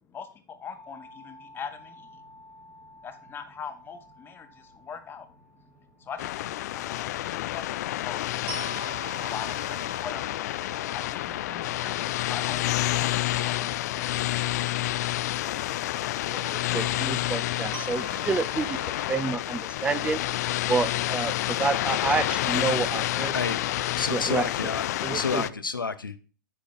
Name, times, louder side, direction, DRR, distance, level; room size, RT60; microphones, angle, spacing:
voice 1, 0.1-2.2 3.0-5.7 6.0-10.5 10.9-14.4, left 6 dB, 20° left, 8 dB, 1.2 m, -42 dB
sound 1, 0.7-19.2, right 4 dB, 45° right, 2.2 m, -48 dB
sound 2, 6.2-25.5, left 15 dB, 50° left, 0.4 m, -29 dB
voice 2, 16.3-18.8 19.1-20.2 20.7-23.3 24.1-24.4 25.0-25.4, right 4 dB, 10° right, 13 dB, 0.7 m, -29 dB
voice 3, 24.0-26.2, left 4 dB, 90° left, 12 dB, 0.9 m, -30 dB
8.9 x 5.2 x 5.4 m, 0.36 s
figure-of-eight pair, 105°, 11 cm